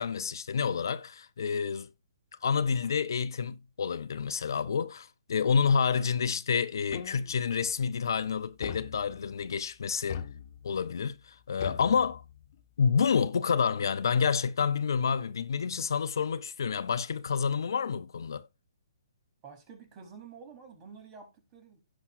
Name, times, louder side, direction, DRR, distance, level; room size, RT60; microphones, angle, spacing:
voice 1, 0.0-1.9 2.4-10.3 10.6-12.2 12.8-18.5, left 6 dB, 65° left, 0.6 m, -29 dB
sound 1, 6.9-7.6 8.6-9.5 10.1-10.9 11.6-12.6, left 9 dB, 45° left, 1.4 m, -41 dB
voice 2, 19.4-21.8, right 5 dB, 25° right, 3.7 m, -49 dB
16.5 x 6.0 x 2.5 m
figure-of-eight pair, 130°, 2 cm